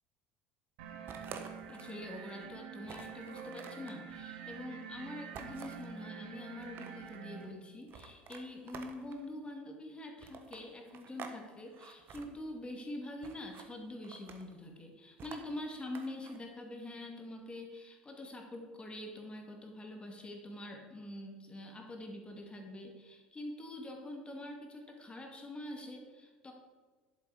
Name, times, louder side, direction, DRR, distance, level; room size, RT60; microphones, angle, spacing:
sound 1, 0.8-7.5, right 7 dB, 65° right, 1.4 m, -47 dB
sound 2, 1.1-2.0 2.4-2.5 2.8-4.0 5.3-5.9 6.5-7.2 7.9-9.2 10.2-11.4 11.7-12.3 13.2-13.7 14.0-14.6 15.2-16.4, right 6 dB, 40° right, 1.2 m, -49 dB
voice 1, 1.7-26.5, left 1 dB, 20° left, 2 dB, 2.1 m, -45 dB
11.0 x 7.8 x 4.8 m, 1.4 s
figure-of-eight pair, 65°, 5 cm